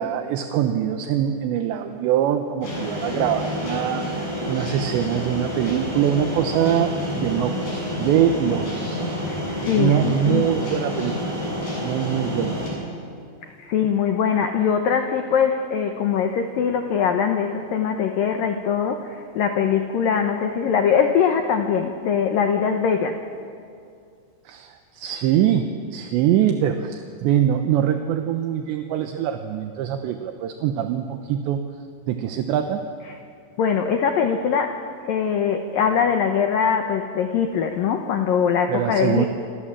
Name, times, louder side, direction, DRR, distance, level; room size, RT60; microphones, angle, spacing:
voice 1, 0.0-9.0 9.6-11.4 11.8-12.6 24.5-31.7 32.1-32.8 38.7-39.3, right 10 dB, 75° right, 6 dB, 3.0 m, -23 dB
sound 1, 2.6-12.7, left 1 dB, 45° left, 9.0 m, -28 dB
voice 2, 9.3-10.5 13.4-23.2 33.1-33.2 33.6-39.3, left 7 dB, 85° left, 5 dB, 2.0 m, -22 dB
28.5 x 26.5 x 7.4 m, 2.4 s
omnidirectional pair, 5.8 m